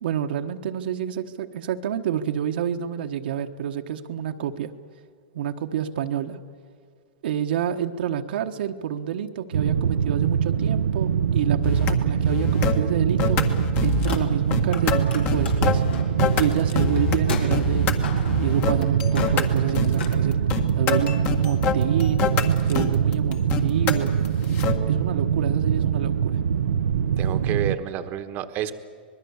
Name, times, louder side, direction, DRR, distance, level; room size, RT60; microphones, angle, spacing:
voice 1, 0.0-4.7 5.3-6.4 7.2-13.4 13.8-15.8 16.3-18.0 18.4-20.4 20.7-22.3 22.7-24.1 24.9-26.3, right 9 dB, 70° right, 5 dB, 1.2 m, -28 dB
sound 1, 9.5-27.8, right 8 dB, 90° right, 0.8 m, -23 dB
sound 2, 11.6-11.9 12.3-12.8 13.2-14.2 14.5-17.2 17.5-17.9 18.3-24.8, left 6 dB, 35° left, 1.7 m, -26 dB
Car, 13.9-14.8 15.1-20.2, left 5 dB, 80° left, 4.4 m, -37 dB
voice 2, 27.2-28.7, right 11 dB, 35° right, 8 dB, 1.2 m, -29 dB
25.5 x 21.0 x 7.2 m, 2.2 s
hypercardioid pair, 140°, 6 cm